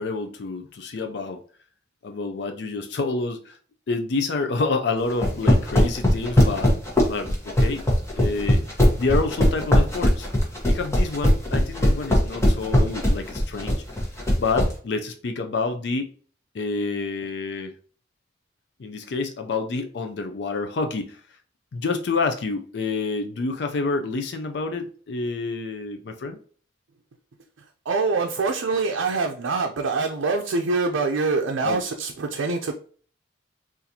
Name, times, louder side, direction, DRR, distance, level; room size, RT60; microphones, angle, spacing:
voice 1, 0.0-1.4 2.0-3.6 3.9-6.8 7.1-7.8 8.2-8.6 9.0-10.3 10.6-13.8 14.4-16.1 16.5-17.7 18.8-21.2 21.7-26.4 31.6-31.8, left 3 dB, 60° left, 6 dB, 0.4 m, -28 dB
sound 1, 5.1-14.7, left 1 dB, 15° left, 1.0 m, -18 dB
voice 2, 27.6-32.7, right 4 dB, 85° right, 2 dB, 0.5 m, -25 dB
4.1 x 2.5 x 2.7 m, 0.43 s
head